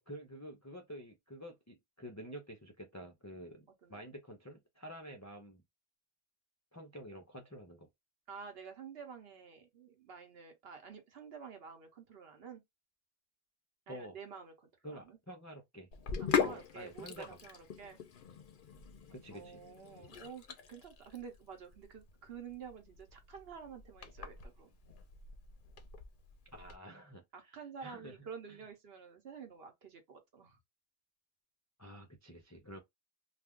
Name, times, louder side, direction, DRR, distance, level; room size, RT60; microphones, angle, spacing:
voice 1, 0.0-5.6 6.7-7.9 13.9-14.2 14.8-15.9 16.4-17.4 19.1-19.6 26.5-28.2 28.5-28.6 31.8-32.8, equal, 30° left, 0.3 m, -49 dB
voice 2, 8.3-12.6 13.9-15.2 16.2-18.0 19.3-24.8 27.3-30.6, right 6 dB, 60° right, 1.0 m, -50 dB
Sink (filling or washing), 15.9-26.8, left 6 dB, 55° left, 0.7 m, -41 dB
2.5 x 2.3 x 3.5 m
omnidirectional pair, 1.2 m